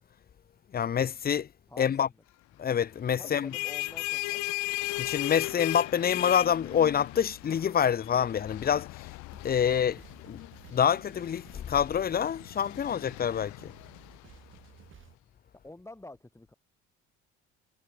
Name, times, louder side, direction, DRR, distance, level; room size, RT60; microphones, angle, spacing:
voice 1, 0.7-1.5 1.8-2.1 2.6-3.5 5.0-8.9 9.4-10.4 10.7-13.7, left 8 dB, 30° left, 0.7 m, -27 dB
voice 2, 1.7-2.1 3.2-4.5 15.6-16.5, left 2 dB, 10° left, 3.8 m, -48 dB
sound 1, 3.3-14.6, left 22 dB, 70° left, 1.5 m, -37 dB
sound 2, 9.3-15.2, right 8 dB, 40° right, 1.7 m, -55 dB
hypercardioid pair, 70°, 30 cm